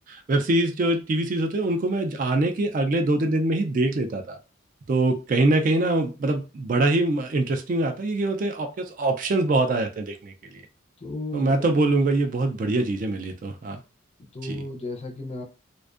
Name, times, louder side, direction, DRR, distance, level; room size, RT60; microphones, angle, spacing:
voice 1, 0.1-4.4 4.9-10.6 11.3-13.8 14.4-14.6, right 2 dB, 40° right, 0.3 m, -24 dB
voice 2, 11.0-11.7 14.3-15.4, left 2 dB, 30° left, 0.4 m, -34 dB
2.5 x 2.2 x 2.4 m
head